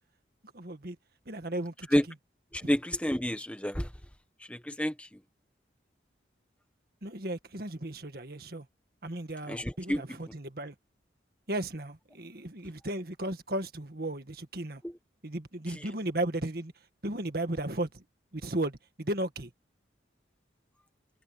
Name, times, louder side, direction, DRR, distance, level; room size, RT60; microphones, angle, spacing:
voice 1, 0.5-1.0 1.3-1.9 2.6-2.7 7.0-8.7 9.0-10.7 11.5-14.8 15.2-16.7 17.0-18.0 18.3-19.5, right 1 dB, 55° right, 1.9 m, -35 dB
voice 2, 2.5-3.9 4.5-5.1 9.5-10.0 14.8-14.9 15.7-15.9, equal, 5° left, 1.2 m, -29 dB
head